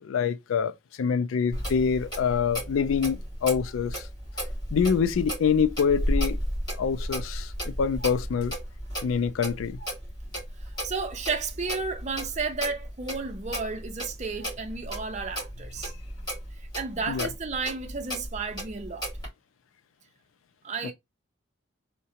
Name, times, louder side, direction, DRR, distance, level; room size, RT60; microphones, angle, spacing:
voice 1, 0.0-4.1 4.7-6.4 6.7-8.5 9.0-9.8 17.1-17.3, left 6 dB, 85° left, 0.4 m, -26 dB
Clock, 1.5-19.3, equal, 20° left, 2.3 m, -34 dB
voice 2, 10.8-15.9 16.6-19.1 20.6-20.9, right 4 dB, 35° right, 0.6 m, -32 dB
3.7 x 2.2 x 2.8 m
head